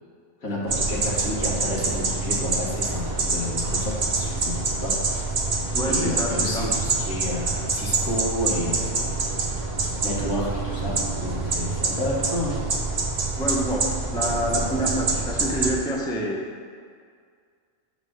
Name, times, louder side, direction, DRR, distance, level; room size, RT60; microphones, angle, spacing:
voice 1, 0.4-4.5 4.8-4.9 5.8-9.1 10.0-12.6, left 1 dB, 70° left, -5 dB, 2.1 m, -30 dB
sound 1, 0.7-15.7, right 3 dB, 45° right, 0.6 m, -26 dB
voice 2, 5.7-6.7 13.4-16.4, equal, 5° left, -2 dB, 0.5 m, -27 dB
7.2 x 3.7 x 6.2 m, 2.1 s
omnidirectional pair, 1.5 m